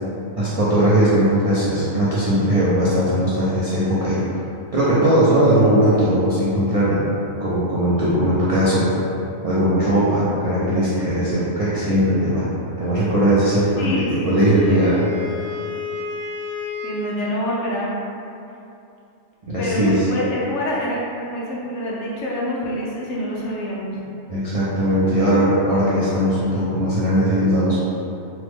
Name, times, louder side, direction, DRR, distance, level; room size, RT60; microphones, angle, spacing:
voice 1, 0.4-4.2 4.7-7.0 7.4-8.9 9.4-12.5 12.8-15.1 19.5-20.0 24.3-27.8, right 1 dB, 55° right, -10 dB, 0.4 m, -19 dB
voice 2, 13.8-14.9 16.8-18.0 19.6-24.0, equal, 65° left, -5 dB, 0.9 m, -26 dB
Wind instrument woodwind instrument, 14.0-17.2, left 4 dB, 80° right, 1.1 m, -31 dB
3.5 x 2.0 x 3.3 m, 2.7 s
omnidirectional pair, 1.4 m